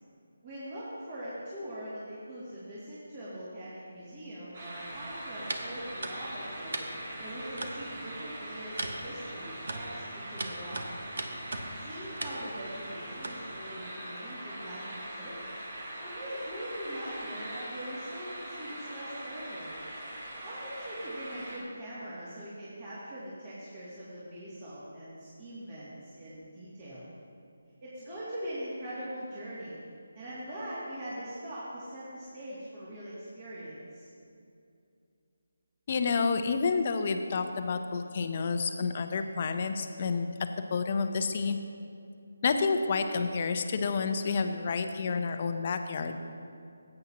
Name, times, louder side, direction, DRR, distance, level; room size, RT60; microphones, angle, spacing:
voice 1, 0.4-6.8 7.2-10.8 11.6-15.4 16.0-19.8 20.4-27.1 27.8-29.8 30.1-34.1, equal, 30° right, -11 dB, 2.5 m, -42 dB
sound 1, 4.5-21.6, right 1 dB, 50° right, 2.8 m, -42 dB
sound 2, 4.9-13.7, right 2 dB, 70° right, 1.0 m, -41 dB
voice 2, 35.9-40.3 40.7-41.6 42.4-46.2, left 4 dB, 40° left, 7 dB, 0.7 m, -29 dB
15.5 x 8.8 x 3.0 m, 2.5 s
figure-of-eight pair, 160°, 0 cm